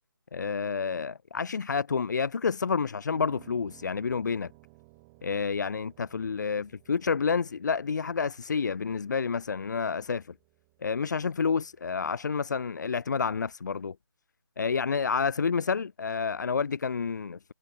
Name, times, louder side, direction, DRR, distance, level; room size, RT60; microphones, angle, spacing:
voice 1, 0.3-4.5 5.2-10.3 10.8-14.0 14.6-17.5, left 5 dB, 50° left, 0.4 m, -29 dB
Piano, 3.1-13.2, right 28 dB, 10° right, 1.5 m, -59 dB
figure-of-eight pair, 165°, 13 cm